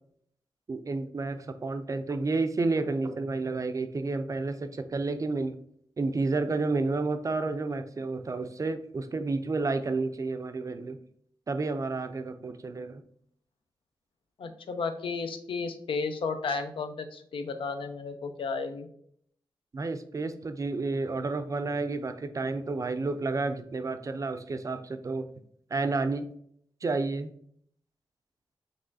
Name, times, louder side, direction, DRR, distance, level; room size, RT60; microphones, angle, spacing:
voice 1, 0.7-5.6 6.0-11.0 11.5-13.0 19.7-25.3 25.7-26.3 26.8-27.3, right 3 dB, 40° right, 9 dB, 0.4 m, -30 dB
voice 2, 14.4-18.9, left 4 dB, 80° left, 7 dB, 0.5 m, -33 dB
5.3 x 3.2 x 2.6 m, 0.65 s
cardioid pair, 80°, 9 cm